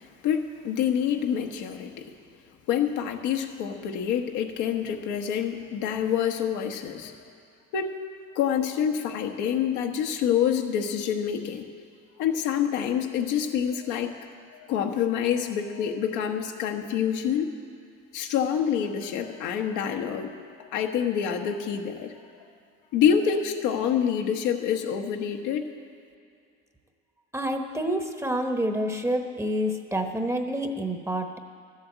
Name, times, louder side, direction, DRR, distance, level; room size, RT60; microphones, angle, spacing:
voice 1, 0.2-2.1 2.7-7.2 7.7-8.0 8.3-11.7 12.2-14.1 14.5-17.5 18.1-22.1 22.9-25.7, left 8 dB, 70° left, 3 dB, 1.2 m, -27 dB
voice 2, 27.3-31.4, equal, 10° right, 5 dB, 1.1 m, -28 dB
12.5 x 7.9 x 8.1 m, 2.4 s
supercardioid pair, 85°, 31 cm